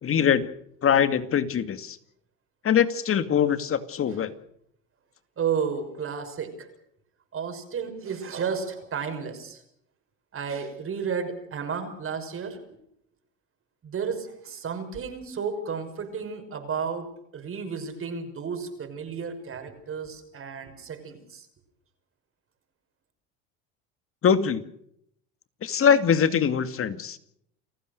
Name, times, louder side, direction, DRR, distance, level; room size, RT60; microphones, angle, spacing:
voice 1, 0.0-0.5 0.8-2.0 2.6-4.3 24.2-24.6 25.6-27.2, left 8 dB, 40° left, 11 dB, 2.3 m, -22 dB
voice 2, 5.4-6.7 7.3-9.6 10.3-12.8 13.8-17.1 17.3-21.5, right 6 dB, 40° right, 6 dB, 6.1 m, -32 dB
29.5 x 15.0 x 6.7 m, 0.71 s
supercardioid pair, 95°, 34 cm